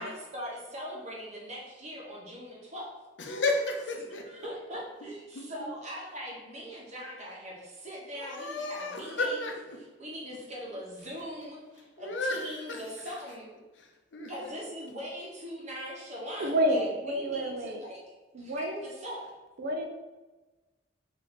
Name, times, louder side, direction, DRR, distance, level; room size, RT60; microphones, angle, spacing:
voice 1, 0.0-2.9 4.3-9.5 9.8-13.5 14.3-18.0 18.4-19.3, equal, 40° right, -4 dB, 1.1 m, -41 dB
voice 2, 3.2-4.2 5.3-5.4 8.1-9.8 12.0-12.8 13.8-13.9 14.1-14.3, left 2 dB, 70° left, 1 dB, 0.6 m, -32 dB
voice 3, 16.4-17.8 18.3-18.8 19.6-19.9, equal, 55° right, 4 dB, 0.5 m, -29 dB
3.3 x 2.8 x 3.9 m, 1.2 s
head